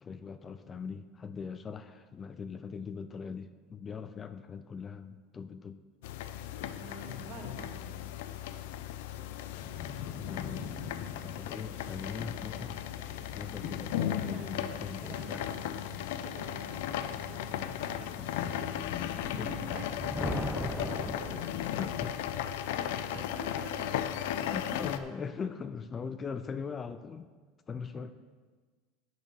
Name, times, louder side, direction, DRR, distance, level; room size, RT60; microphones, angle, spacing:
voice 1, 0.0-5.8 10.0-12.8 13.3-15.5 19.3-19.9 20.2-21.2 21.7-22.2 23.2-23.3 24.4-27.3 27.7-28.1, left 5 dB, 25° left, 11 dB, 0.4 m, -41 dB
sound 1, 6.0-25.0, left 11 dB, 80° left, 0.5 m, -36 dB
voice 2, 6.7-8.3 14.2-18.7 19.4-19.9 22.5-24.0, right 3 dB, 60° right, 0 dB, 2.2 m, -48 dB
sound 2, 9.6-20.2, left 7 dB, 65° left, 1.1 m, -44 dB
Thunder, 19.7-22.2, left 1 dB, 5° left, 0.8 m, -37 dB
8.3 x 6.9 x 6.1 m, 1.5 s
supercardioid pair, 135°, 0 cm